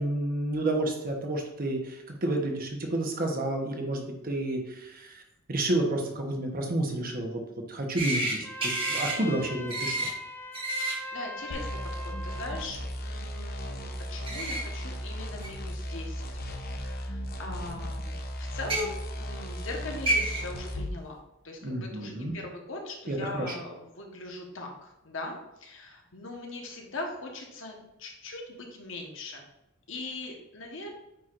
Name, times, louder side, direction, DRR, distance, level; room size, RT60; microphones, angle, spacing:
voice 1, 0.0-5.2 5.5-7.4 7.7-10.1 21.6-22.3 23.1-23.5, right 1 dB, 45° right, 2 dB, 1.1 m, -30 dB
sound 1, 8.0-8.3 8.6-9.1 9.7-10.1 10.5-10.9 14.3-14.6 15.4-15.5 16.8-16.9 18.6-18.8 19.7-19.8 20.1-20.4, right 1 dB, 25° right, 1.3 m, -29 dB
Trumpet, 8.4-12.7, left 1 dB, 10° left, 0.6 m, -41 dB
voice 2, 10.8-16.3 16.6-21.2 21.4-29.5 29.9-30.9, left 2 dB, 65° left, 1 dB, 1.3 m, -40 dB
sound 2, 11.5-21.0, equal, 50° left, 0.8 m, -36 dB
8.9 x 4.6 x 2.5 m, 0.91 s
head